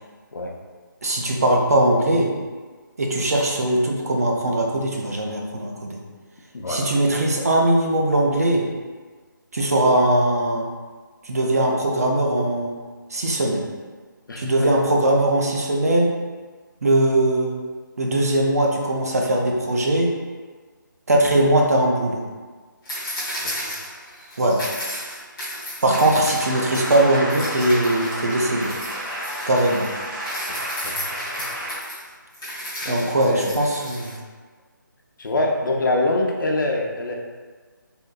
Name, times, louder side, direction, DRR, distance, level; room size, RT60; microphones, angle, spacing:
voice 1, 1.0-2.3 3.0-6.0 6.7-8.7 9.5-10.7 11.2-12.7 13.1-13.6 14.4-16.1 16.8-17.5 18.0-20.1 21.1-22.2 24.4-24.6 25.8-28.7 29.5-29.9 32.9-34.2, right 1 dB, 45° right, 0 dB, 0.5 m, -20 dB
voice 2, 6.5-6.8 14.3-14.7 23.4-23.7 30.8-30.9 32.8-33.0 33.2-33.6 35.2-37.2, left 2 dB, 70° left, 0 dB, 0.5 m, -24 dB
sound 1, 22.9-27.0 27.3-34.1, equal, 10° left, 0.4 m, -34 dB
sound 2, 26.3-31.7, equal, 85° right, 1.1 m, -31 dB
3.5 x 2.6 x 2.3 m, 1.4 s
figure-of-eight pair, 175°, 11 cm